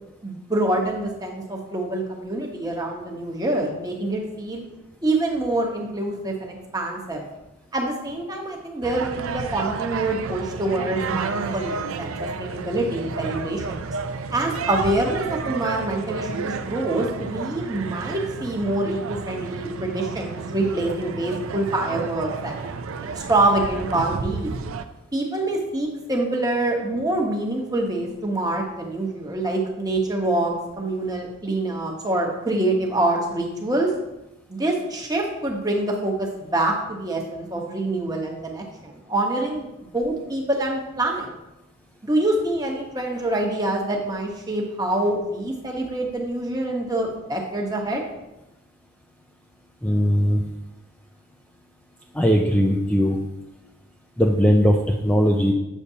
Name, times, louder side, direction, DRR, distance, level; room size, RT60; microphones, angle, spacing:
voice 1, 0.2-4.6 5.0-7.3 7.7-13.9 14.3-22.6 23.1-24.5 25.1-33.9 34.5-39.7 39.9-41.3 42.0-48.0, right 2 dB, 15° right, 0 dB, 1.0 m, -25 dB
sound 1, 8.8-24.8, right 5 dB, 65° right, 0.4 m, -31 dB
voice 2, 49.8-50.4 52.1-53.2 54.2-55.5, equal, 5° left, 0 dB, 0.3 m, -19 dB
8.2 x 6.5 x 2.8 m, 0.96 s
head